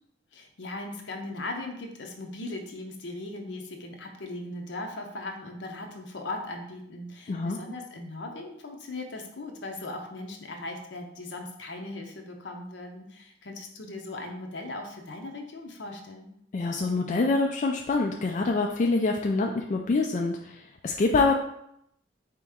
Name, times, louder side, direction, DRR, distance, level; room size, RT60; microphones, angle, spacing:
voice 1, 0.3-16.3, left 2 dB, 75° left, 3 dB, 0.7 m, -38 dB
voice 2, 7.3-7.6 16.5-21.3, left 3 dB, 45° left, 1 dB, 0.3 m, -25 dB
4.1 x 2.9 x 3.5 m, 0.74 s
head